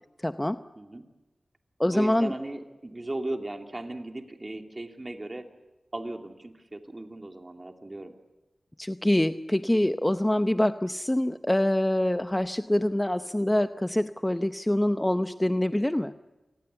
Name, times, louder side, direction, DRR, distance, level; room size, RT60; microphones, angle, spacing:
voice 1, 0.2-0.6 1.8-2.3 8.8-16.1, left 1 dB, 15° left, 10 dB, 0.8 m, -25 dB
voice 2, 1.9-5.5 5.9-8.1, right 1 dB, 30° right, 5 dB, 2.8 m, -37 dB
27.0 x 20.0 x 8.2 m, 1.1 s
wide cardioid pair, 60°, 0 cm